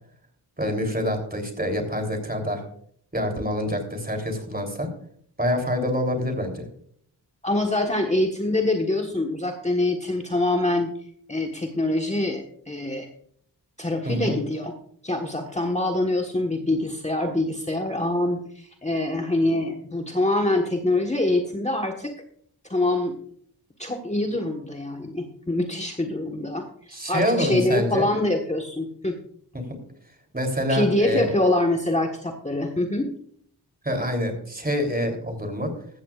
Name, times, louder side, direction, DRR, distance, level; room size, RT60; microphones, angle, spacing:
voice 1, 0.6-2.6 3.1-4.9 5.4-6.6 14.0-14.4 26.9-28.1 29.5-29.6 30.3-31.3 33.8-35.7, equal, 20° right, 4 dB, 3.3 m, -26 dB
voice 2, 7.4-10.9 11.3-13.1 13.8-14.7 15.0-22.1 22.7-23.2 23.8-29.2 30.7-33.1, left 2 dB, 15° left, 2 dB, 1.4 m, -25 dB
14.5 x 14.0 x 2.4 m, 0.63 s
wide cardioid pair, 65°, 42 cm